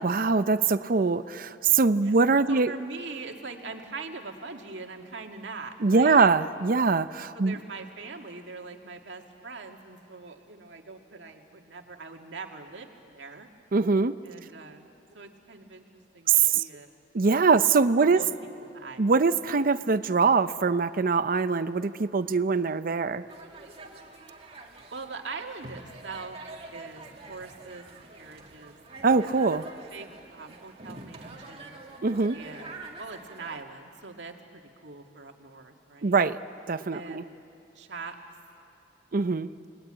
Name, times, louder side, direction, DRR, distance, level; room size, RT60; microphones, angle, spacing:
voice 1, 0.0-2.7 5.8-7.5 13.7-14.2 16.3-16.7 17.1-18.2 19.0-23.2 29.0-29.7 32.0-32.4 36.0-36.4 36.7-37.3 39.1-39.5, right 4 dB, 50° right, 12 dB, 0.6 m, -23 dB
voice 2, 2.5-6.2 7.3-13.5 14.2-14.9 15.1-15.8 16.1-16.3 16.5-16.9 18.0-18.3 18.7-19.0 24.9-26.4 26.7-28.8 29.1-29.4 29.7-31.8 32.3-36.2 36.9-37.4 37.8-38.2, right 4 dB, 80° right, 3 dB, 2.0 m, -42 dB
sound 1, 23.3-33.6, right 2 dB, 35° right, 2.2 m, -46 dB
29.5 x 19.5 x 8.9 m, 2.7 s
head